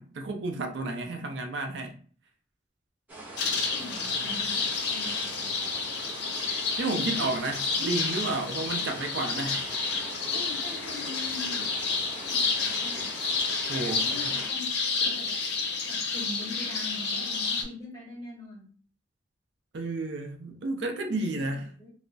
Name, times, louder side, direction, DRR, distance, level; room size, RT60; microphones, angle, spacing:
voice 1, 0.0-2.0 6.8-9.8 13.7-14.3 19.7-21.7, right 2 dB, 70° right, 0.4 m, -32 dB
sound 1, 3.1-14.5, right 2 dB, 10° right, 0.7 m, -43 dB
sound 2, 3.4-17.6, left 4 dB, 65° left, 0.6 m, -30 dB
voice 2, 3.7-5.5 7.0-7.2 10.3-11.7 12.2-13.1 13.9-14.7 15.0-15.4 15.9-18.7 20.9-21.9, left 2 dB, 20° left, 1.1 m, -43 dB
2.2 x 2.0 x 3.8 m
head